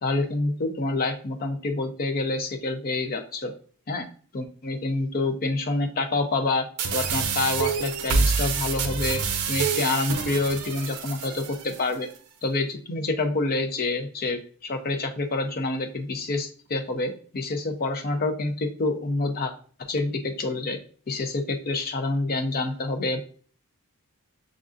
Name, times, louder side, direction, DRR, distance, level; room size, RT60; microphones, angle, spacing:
voice 1, 0.0-3.5 3.9-4.1 4.3-6.7 6.9-9.2 9.5-12.1 12.4-19.5 19.9-20.8 21.1-23.2, left 2 dB, 40° left, 5 dB, 0.6 m, -27 dB
sound 1, 6.8-11.8, right 5 dB, 85° right, 0.6 m, -27 dB
6.3 x 2.4 x 2.5 m, 0.43 s
head